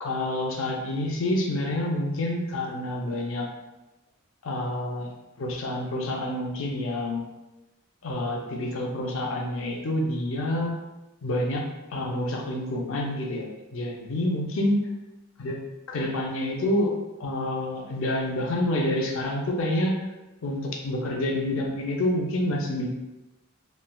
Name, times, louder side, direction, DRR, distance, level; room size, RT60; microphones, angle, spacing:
voice 1, 0.0-3.5 4.4-5.1 5.4-7.2 8.0-10.8 11.2-11.6 11.9-14.8 15.4-15.6 15.9-16.9 17.2-19.9 20.4-22.9, left 1 dB, 65° left, 0 dB, 0.5 m, -28 dB
3.1 x 2.3 x 2.3 m, 1.0 s
head